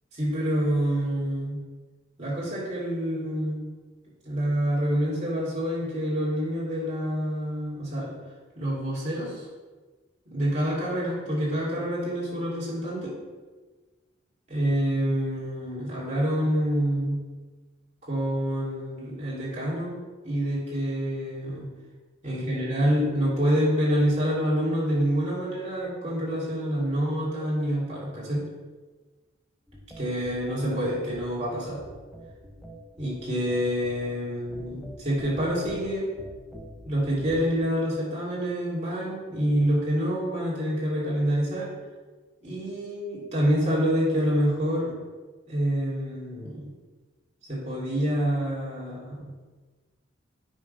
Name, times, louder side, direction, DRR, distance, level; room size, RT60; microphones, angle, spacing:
voice 1, 0.1-1.6 2.2-3.7 4.2-8.1 8.6-9.4 10.3-13.2 14.5-17.2 18.0-20.0 20.2-21.7 22.2-28.5 30.0-31.8 33.0-36.1 36.8-41.7 42.4-45.0 45.5-46.7 47.5-49.3, equal, 35° right, -7 dB, 2.5 m, -27 dB
sound 1, 29.7-37.6, equal, ahead, 0.7 m, -45 dB
8.6 x 3.7 x 5.3 m, 1.3 s
head